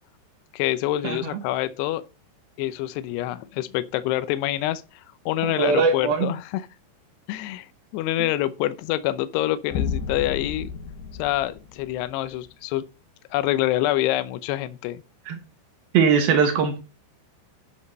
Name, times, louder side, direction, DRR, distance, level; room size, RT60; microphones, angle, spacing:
voice 1, 0.5-2.0 2.6-4.8 5.3-6.6 7.3-7.7 7.9-10.7 11.2-12.8 13.3-15.0, left 14 dB, 90° left, 2.4 m, -26 dB
voice 2, 5.4-6.3 15.3-15.4 15.9-16.8, right 6 dB, 70° right, 2.4 m, -21 dB
sound 1, 9.7-12.3, left 7 dB, 65° left, 3.1 m, -31 dB
9.8 x 7.4 x 4.2 m
omnidirectional pair, 5.6 m